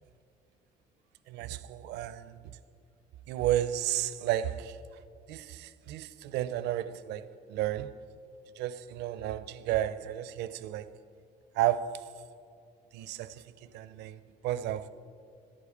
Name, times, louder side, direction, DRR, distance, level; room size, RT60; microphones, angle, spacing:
voice 1, 1.3-2.4 3.3-4.8 5.3-8.0 8.6-10.9 11.6-12.0 12.9-13.3 13.6-14.9, right 12 dB, 85° right, 0.6 m, -32 dB
11.5 x 8.7 x 7.1 m
cardioid pair, 110°, 17 cm